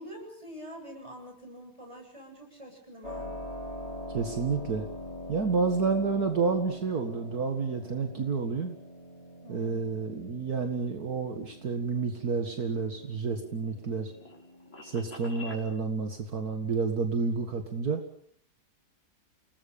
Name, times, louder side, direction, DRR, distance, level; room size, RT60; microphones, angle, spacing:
voice 1, 0.0-3.3 9.4-9.8, equal, 20° right, 3 dB, 7.6 m, -45 dB
Keyboard (musical), 3.0-15.6, left 1 dB, 20° left, 6.1 m, -44 dB
voice 2, 4.1-4.9 5.3-8.8 9.5-14.1 14.8-18.0, right 4 dB, 65° right, 5 dB, 2.4 m, -30 dB
sound 1, 12.9-15.7, left 2 dB, 45° left, 4.8 m, -48 dB
29.5 x 20.0 x 7.1 m, 0.62 s
omnidirectional pair, 1.8 m